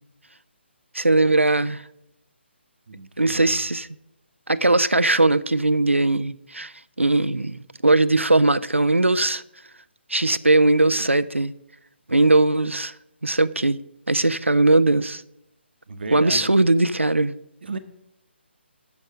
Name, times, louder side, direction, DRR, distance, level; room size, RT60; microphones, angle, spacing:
voice 1, 0.9-1.8 3.2-3.9 4.5-6.7 7.0-9.4 10.1-11.5 12.1-12.9 13.2-13.8 14.1-15.2 16.1-17.3, right 2 dB, 90° right, 0.5 m, -19 dB
voice 2, 2.9-3.6 15.9-16.5 17.6-17.8, right 3 dB, 60° right, 0.9 m, -34 dB
12.5 x 5.4 x 6.2 m
figure-of-eight pair, 140°, 6 cm